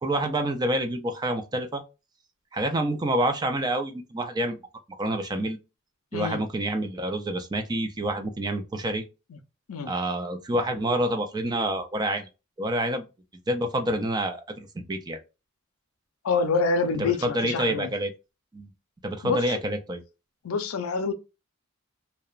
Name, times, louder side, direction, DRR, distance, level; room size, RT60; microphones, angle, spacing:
voice 1, 0.0-1.8 2.5-4.6 5.0-5.6 6.1-9.0 9.9-12.3 12.6-13.1 13.5-15.2 17.0-18.1 18.5-18.7 19.0-20.0, right 1 dB, 20° right, 0.4 m, -27 dB
voice 2, 16.2-17.9 19.2-19.6 20.4-21.1, left 4 dB, 80° left, 0.5 m, -27 dB
2.8 x 2.1 x 2.3 m
head